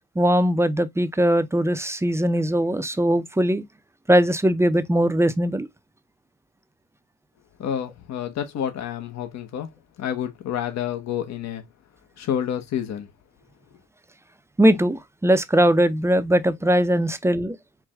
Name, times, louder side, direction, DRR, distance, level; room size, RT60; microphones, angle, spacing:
voice 1, 0.2-3.6 4.1-5.7 14.6-17.6, equal, 10° right, 0.5 m, -20 dB
voice 2, 7.6-9.7 10.0-11.6 12.2-13.1, left 9 dB, 60° left, 0.9 m, -29 dB
4.7 x 2.2 x 3.4 m
cardioid pair, 90°, 30 cm